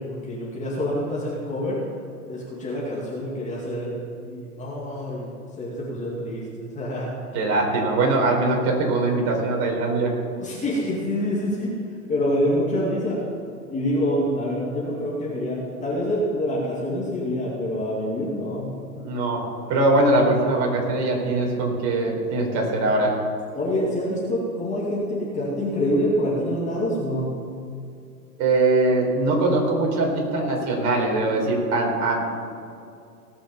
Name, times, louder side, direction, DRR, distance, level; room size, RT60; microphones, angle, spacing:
voice 1, 0.0-1.8 2.3-5.3 5.6-7.1 10.4-11.7 12.1-13.2 13.7-18.7 22.5-22.6 23.5-27.3, equal, 15° left, -6 dB, 2.5 m, -26 dB
voice 2, 7.3-10.1 19.0-19.4 19.7-23.1 28.4-32.3, right 2 dB, 35° right, 0 dB, 4.1 m, -22 dB
18.0 x 6.3 x 7.2 m, 2.4 s
hypercardioid pair, 125°, 47 cm